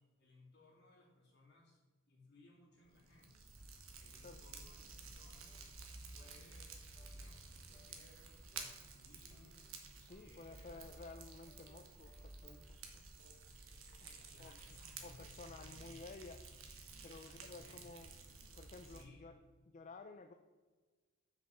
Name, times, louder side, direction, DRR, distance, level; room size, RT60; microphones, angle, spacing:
voice 1, 0.0-1.8 2.1-3.4 4.0-5.6 6.1-6.7 7.0-9.7 10.2-10.8 13.2-16.1 17.0-18.4 18.8-19.3, left 2 dB, 55° left, -4 dB, 2.5 m, -64 dB
Fire, 2.9-19.0, right 4 dB, 85° right, 1.2 m, -53 dB
sound 1, 5.5-5.6 6.2-6.4 6.9-7.2 7.7-8.0 8.5-8.8 9.3-9.5 10.1-10.3 10.8-12.6, left 3 dB, 10° left, 1.2 m, -69 dB
voice 2, 10.0-13.0 14.0-14.1 14.4-14.6 15.0-16.4 17.0-18.1 18.6-19.4 19.7-20.3, left 3 dB, 35° left, 6 dB, 0.4 m, -54 dB
6.5 x 5.3 x 5.9 m, 1.3 s
head